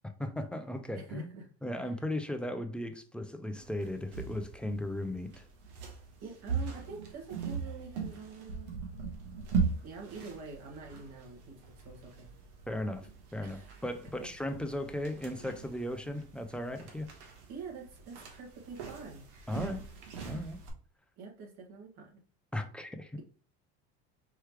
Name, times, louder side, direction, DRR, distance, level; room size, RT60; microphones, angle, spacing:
voice 1, 0.0-1.3 1.6-5.5 12.7-17.1 19.5-19.8 20.2-20.6 22.5-23.2, left 1 dB, 5° left, 0.3 m, -37 dB
voice 2, 0.9-1.5 6.2-8.7 9.8-12.3 13.4-13.8 17.5-19.3 21.2-22.2 23.1-23.2, right 4 dB, 60° right, 2.0 m, -46 dB
sound 1, 3.6-20.7, right 5 dB, 85° right, 1.3 m, -40 dB
4.7 x 3.2 x 3.2 m
supercardioid pair, 120°, 33 cm